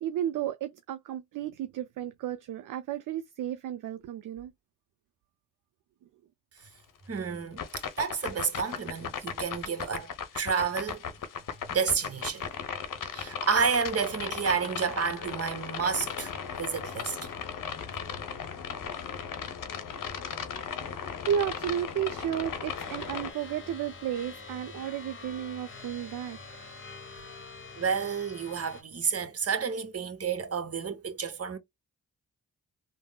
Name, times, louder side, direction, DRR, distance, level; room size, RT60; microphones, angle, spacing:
voice 1, 0.0-4.5 21.2-26.7, right 10 dB, 55° right, 0.4 m, -33 dB
voice 2, 7.1-10.1 10.3-11.0 11.7-12.5 13.1-17.2 27.8-31.6, right 6 dB, 35° right, 0.9 m, -30 dB
sound 1, 7.6-23.3, left 7 dB, 55° left, 0.8 m, -37 dB
sound 2, 22.7-28.8, left 4 dB, 30° left, 1.0 m, -46 dB
3.4 x 2.0 x 2.2 m
supercardioid pair, 45°, 39 cm